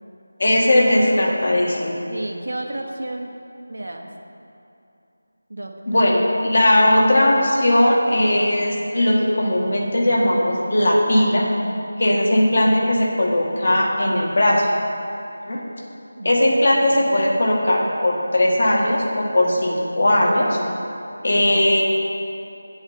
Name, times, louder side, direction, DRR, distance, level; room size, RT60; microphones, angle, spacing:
voice 1, 0.4-2.0 5.9-11.5 12.0-14.7 15.5-15.6 16.2-20.6 21.2-21.8, left 1 dB, 55° left, -2 dB, 1.8 m, -18 dB
voice 2, 2.1-3.3 3.7-4.1 5.5-6.2 16.2-16.4 16.9-17.0, right 1 dB, 70° right, 2 dB, 1.2 m, -32 dB
8.0 x 7.9 x 5.7 m, 2.8 s
figure-of-eight pair, 165°, 0 cm